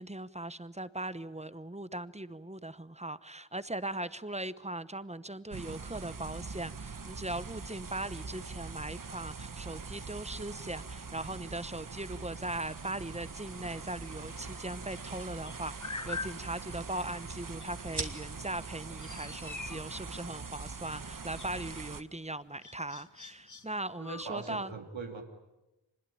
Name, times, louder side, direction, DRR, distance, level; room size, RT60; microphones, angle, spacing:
voice 1, 0.0-24.7, right 1 dB, 15° right, 15 dB, 1.0 m, -39 dB
sound 1, 5.5-22.0, right 4 dB, 45° right, 1.1 m, -43 dB
sound 2, 12.3-24.5, left 4 dB, 40° left, 1.4 m, -48 dB
sound 3, 14.3-21.1, right 3 dB, 60° right, 2.4 m, -48 dB
voice 2, 24.0-25.2, right 5 dB, 90° right, 4 dB, 2.8 m, -40 dB
25.5 x 21.0 x 9.9 m, 1.0 s
wide cardioid pair, 60°, 45 cm